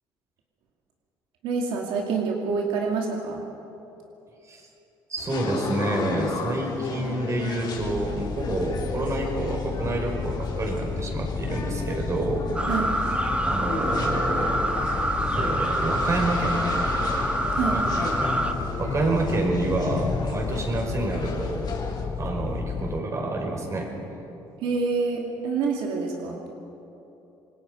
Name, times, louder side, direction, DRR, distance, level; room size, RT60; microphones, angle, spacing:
voice 1, 1.4-3.5 12.7-12.9 17.5-17.8 24.6-26.4, right 4 dB, 85° right, 0 dB, 2.5 m, -27 dB
voice 2, 5.1-12.5 13.4-14.7 15.3-16.6 17.6-17.9 18.8-21.7 22.2-23.9, right 2 dB, 35° right, 1 dB, 5.5 m, -28 dB
sound 1, 5.2-22.1, left 4 dB, 55° left, 3.7 m, -35 dB
sound 2, 7.8-23.0, left 6 dB, 35° left, 0.5 m, -33 dB
sound 3, 12.5-18.5, right 1 dB, 15° right, 1.8 m, -26 dB
27.0 x 21.0 x 5.5 m, 3.0 s
cardioid pair, 95°, 9 cm